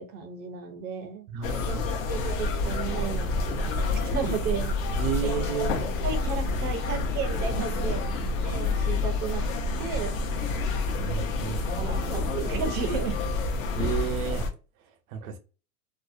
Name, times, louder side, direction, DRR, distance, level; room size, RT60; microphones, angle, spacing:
voice 1, 0.0-1.3 1.6-4.8 5.2-5.3 6.0-8.0 8.4-9.5 9.8-10.2 11.8-13.2, right 6 dB, 25° right, 0.4 m, -34 dB
voice 2, 1.3-1.9 5.0-5.8 11.0-11.9 13.7-14.5 15.1-15.4, right 7 dB, 85° right, 0.7 m, -32 dB
sound 1, 1.4-14.5, left 3 dB, 70° left, 0.8 m, -28 dB
sound 2, 3.0-11.7, left 7 dB, 35° left, 0.6 m, -48 dB
2.6 x 2.0 x 2.4 m
supercardioid pair, 135°, 41 cm